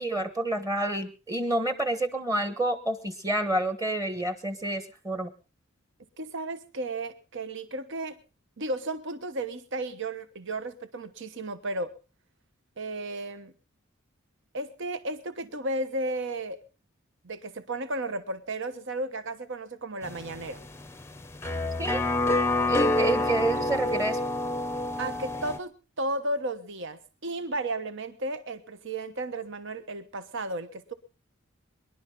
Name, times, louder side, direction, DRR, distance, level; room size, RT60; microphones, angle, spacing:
voice 1, 0.0-5.3 21.8-22.0 22.7-24.2, right 1 dB, 15° right, 9 dB, 1.3 m, -29 dB
voice 2, 6.2-8.2 8.6-11.9 12.8-13.5 14.5-16.6 17.2-20.6 25.0-30.9, right 2 dB, 65° right, 10 dB, 1.2 m, -34 dB
sound 1, 20.0-25.6, left 2 dB, 15° left, 0.7 m, -28 dB
24.0 x 11.5 x 3.8 m, 0.34 s
head